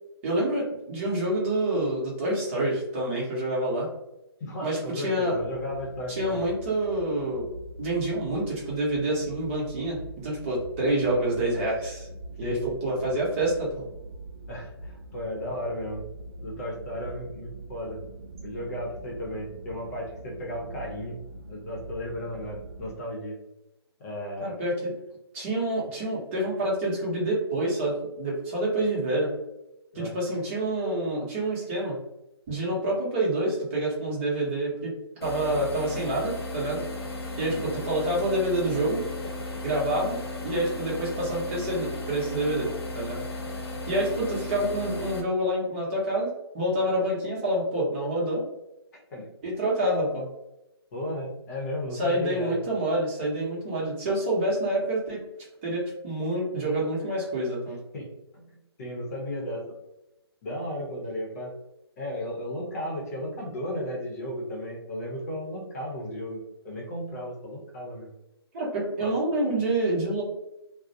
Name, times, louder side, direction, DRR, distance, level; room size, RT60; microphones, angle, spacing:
voice 1, 0.2-3.9 4.6-5.3 6.1-7.5 7.8-12.1 12.4-13.8 24.4-24.8 25.3-29.3 29.9-32.0 32.5-34.9 35.2-36.8 37.4-39.1 39.6-42.7 42.9-43.2 43.9-48.4 49.4-50.3 51.9-55.2 55.6-57.8 68.5-70.2, right 1 dB, 30° right, -5 dB, 0.9 m, -27 dB
voice 2, 4.4-6.5 12.4-12.7 14.5-16.0 16.4-18.0 18.4-21.2 21.5-23.3 24.0-24.6 29.9-30.1 37.5-37.6 49.1-49.3 50.9-52.6 57.9-58.1 58.3-58.4 58.8-59.6 60.4-61.5 62.0-68.1 69.0-69.1, equal, 35° left, -3 dB, 0.8 m, -34 dB
sound 1, 5.3-23.0, right 2 dB, 75° right, 0.5 m, -43 dB
sound 2, 35.2-45.2, left 2 dB, 70° left, 0.8 m, -35 dB
2.4 x 2.1 x 2.7 m, 0.91 s
figure-of-eight pair, 145°, 14 cm